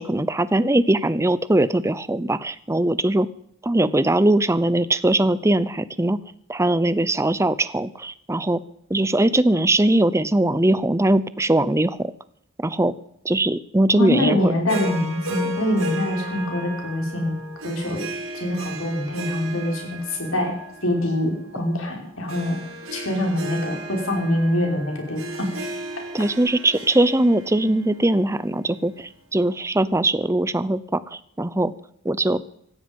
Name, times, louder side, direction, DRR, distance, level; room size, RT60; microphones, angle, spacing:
voice 1, 0.0-3.3 3.6-6.2 6.5-8.6 8.9-12.1 12.6-12.9 13.2-14.5 26.1-31.7 32.0-32.4, right 1 dB, 15° right, 16 dB, 0.6 m, -21 dB
voice 2, 13.9-17.4 17.6-18.0 18.3-20.5 20.8-22.6 22.9-25.5, left 1 dB, 80° left, 1 dB, 5.5 m, -24 dB
Harp, 14.7-29.1, right 1 dB, 85° right, 4.6 m, -35 dB
17.5 x 15.0 x 5.4 m, 0.69 s
head